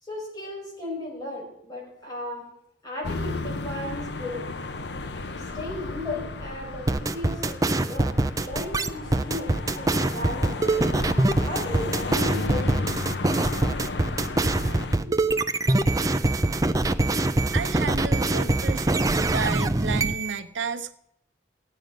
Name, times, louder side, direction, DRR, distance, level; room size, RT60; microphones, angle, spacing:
voice 1, 0.0-2.5 2.8-4.5 5.4-10.8 11.4-13.0 14.1-15.2, left 1 dB, 20° left, -4 dB, 5.4 m, -36 dB
sound 1, 3.0-15.0, left 3 dB, 65° left, 0.8 m, -33 dB
sound 2, 6.9-20.4, right 2 dB, 20° right, 0.5 m, -23 dB
voice 2, 17.5-20.9, right 5 dB, 85° right, 11 dB, 0.7 m, -32 dB
15.0 x 9.4 x 5.2 m, 0.77 s
head